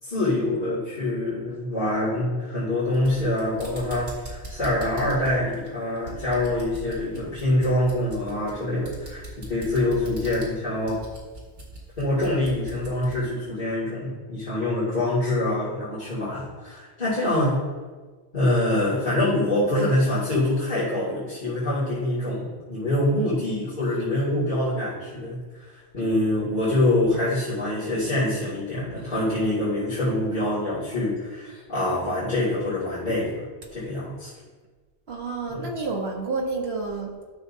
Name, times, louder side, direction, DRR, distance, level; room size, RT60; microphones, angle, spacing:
voice 1, 0.0-11.0 12.0-17.6 18.3-33.4 33.7-34.3 35.5-35.7, left 1 dB, 45° left, -12 dB, 2.8 m, -25 dB
sound 1, 2.8-13.3, right 1 dB, 85° right, 2.4 m, -41 dB
voice 2, 35.1-37.3, right 3 dB, 60° right, -1 dB, 1.5 m, -30 dB
12.0 x 6.5 x 2.8 m, 1.4 s
omnidirectional pair, 1.2 m